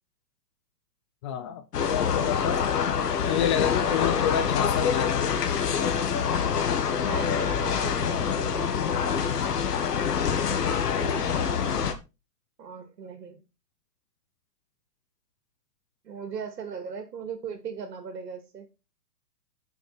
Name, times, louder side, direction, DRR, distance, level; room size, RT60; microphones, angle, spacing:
voice 1, 1.2-2.6 3.2-5.3, left 9 dB, 20° left, 0.5 m, -29 dB
sound 1, 1.7-11.9, left 7 dB, 70° left, 2.2 m, -26 dB
voice 2, 7.1-9.0 11.0-11.7 12.6-13.4 16.0-18.7, right 6 dB, 75° right, 2.9 m, -38 dB
9.3 x 7.3 x 4.4 m
hypercardioid pair, 135°, 49 cm